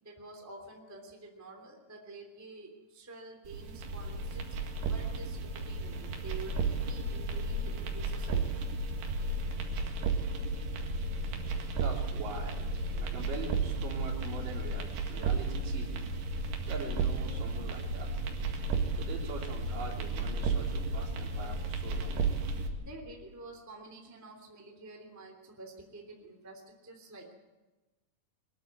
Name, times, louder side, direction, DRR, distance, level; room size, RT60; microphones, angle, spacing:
voice 1, 0.0-4.5 4.9-8.4 12.9-13.1 22.8-27.3, right 2 dB, 5° right, 1 dB, 2.3 m, -49 dB
sound 1, 3.4-22.7, right 3 dB, 85° right, 4.0 m, -33 dB
voice 2, 11.8-12.7 13.0-16.1 16.7-18.1 19.0-22.6, right 3 dB, 55° right, -3 dB, 5.0 m, -43 dB
23.0 x 13.5 x 9.5 m, 1.1 s
omnidirectional pair, 4.6 m